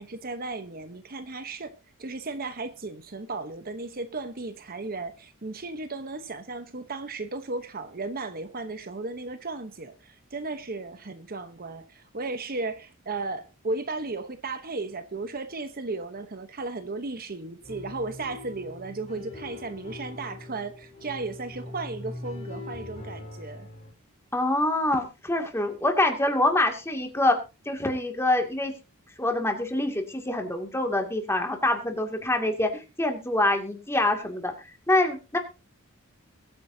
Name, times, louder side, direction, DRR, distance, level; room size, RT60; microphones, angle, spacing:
voice 1, 0.0-23.7, right 3 dB, 45° right, 1.0 m, -35 dB
sound 1, 17.6-23.9, left 2 dB, 35° left, 4.5 m, -41 dB
voice 2, 24.3-27.4 27.7-28.7 29.2-34.5 34.9-35.4, left 1 dB, 10° left, 2.3 m, -25 dB
22.0 x 9.2 x 2.8 m
head